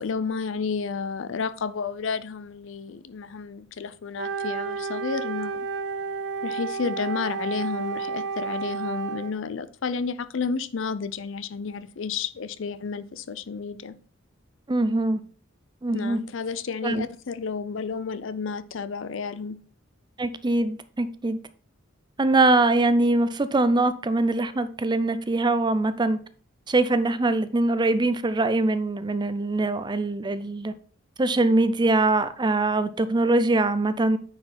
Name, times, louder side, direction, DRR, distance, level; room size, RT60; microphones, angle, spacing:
voice 1, 0.0-5.7 6.4-13.9 15.9-19.6, left 5 dB, 65° left, 0.5 m, -31 dB
Wind instrument woodwind instrument, 4.1-9.4, right 5 dB, 60° right, 0.8 m, -31 dB
voice 2, 14.7-15.2 15.8-16.2 16.8-17.0 20.2-21.4 22.2-26.2 26.7-30.7 31.2-34.2, right 2 dB, 20° right, 0.5 m, -23 dB
9.4 x 4.6 x 4.2 m
head